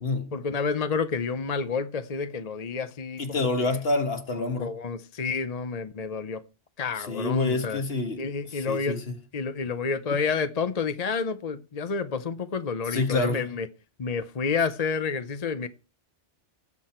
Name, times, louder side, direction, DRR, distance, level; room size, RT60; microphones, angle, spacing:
voice 1, 0.3-3.8 4.4-6.4 6.8-7.8 8.2-9.0 9.3-13.7 14.0-15.7, left 5 dB, 40° left, 0.7 m, -29 dB
voice 2, 3.2-4.7 7.0-8.2 8.5-9.0 12.9-13.4, left 3 dB, 55° left, 1.7 m, -27 dB
18.0 x 7.7 x 4.4 m
omnidirectional pair, 1.2 m